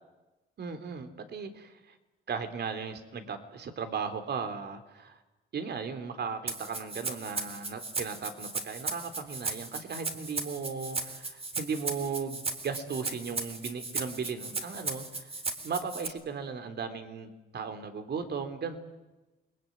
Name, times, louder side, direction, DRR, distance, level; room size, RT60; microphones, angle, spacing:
voice 1, 0.6-1.9 2.3-5.2 5.5-15.3 15.6-18.8, right 5 dB, 55° right, 8 dB, 3.6 m, -36 dB
Rattle (instrument), 6.5-16.1, right 3 dB, 30° right, 3.9 m, -36 dB
29.0 x 21.5 x 9.6 m, 1.1 s
cardioid pair, 90°, 20 cm